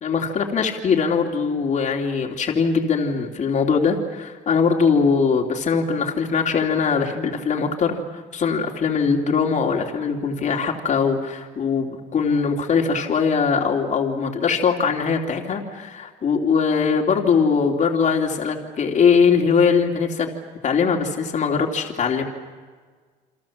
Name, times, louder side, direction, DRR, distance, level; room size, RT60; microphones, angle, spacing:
voice 1, 0.0-20.3 20.6-22.2, left 5 dB, 45° left, 1 dB, 3.0 m, -21 dB
29.0 x 25.5 x 7.4 m, 1.5 s
cardioid pair, 110°, 17 cm